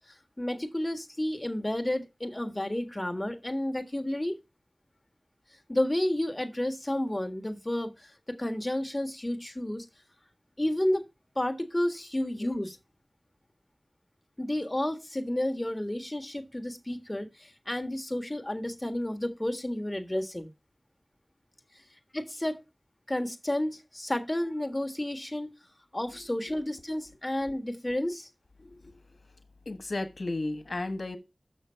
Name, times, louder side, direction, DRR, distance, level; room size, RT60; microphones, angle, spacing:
voice 1, 0.4-4.4 5.7-9.9 10.6-11.0 11.3-12.8 14.4-20.5 22.1-22.6 23.1-25.5 25.9-28.3, left 1 dB, 25° left, 1.6 m, -31 dB
voice 2, 28.6-29.0 29.6-31.2, left 2 dB, 75° left, 1.3 m, -34 dB
6.8 x 6.4 x 5.7 m
wide cardioid pair, 40°, 0 cm